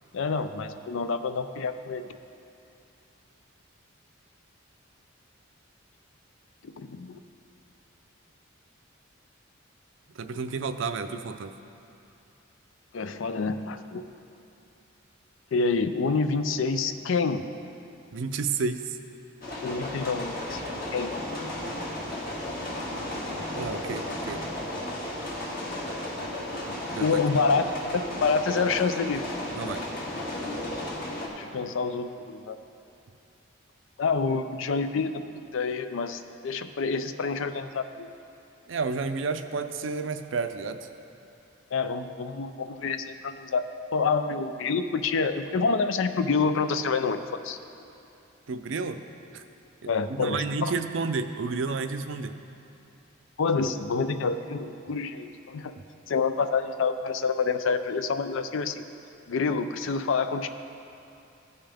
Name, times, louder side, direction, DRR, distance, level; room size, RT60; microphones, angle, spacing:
voice 1, 0.1-2.1 6.6-7.2 12.9-14.0 15.5-17.4 19.6-21.1 27.0-27.7 27.9-29.2 31.4-32.6 34.0-35.2 35.5-38.1 41.7-43.7 43.9-47.6 49.9-50.7 53.4-55.8 56.1-58.9 59.3-60.5, left 4 dB, 70° left, 10 dB, 0.4 m, -27 dB
voice 2, 10.2-11.5 18.1-19.0 23.5-24.4 26.7-27.1 29.5-29.8 38.7-40.9 48.5-49.0 49.3-49.4 49.8-52.4, right 4 dB, 65° right, 9 dB, 0.5 m, -31 dB
sound 1, 19.4-31.3, left 1 dB, 45° left, 1.5 m, -34 dB
16.0 x 5.5 x 3.5 m, 2.7 s
head